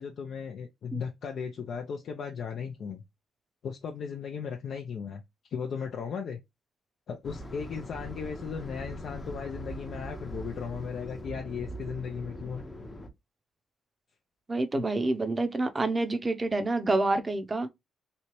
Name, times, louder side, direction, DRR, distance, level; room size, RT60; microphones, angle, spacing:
voice 1, 0.0-3.0 3.6-5.2 5.5-6.4 7.1-12.7 14.7-14.8, left 6 dB, 60° left, 0.5 m, -36 dB
sound 1, 7.2-13.1, equal, 20° left, 0.7 m, -41 dB
voice 2, 14.5-17.7, right 2 dB, 25° right, 0.6 m, -27 dB
3.2 x 2.8 x 2.9 m
cardioid pair, 90°, 0 cm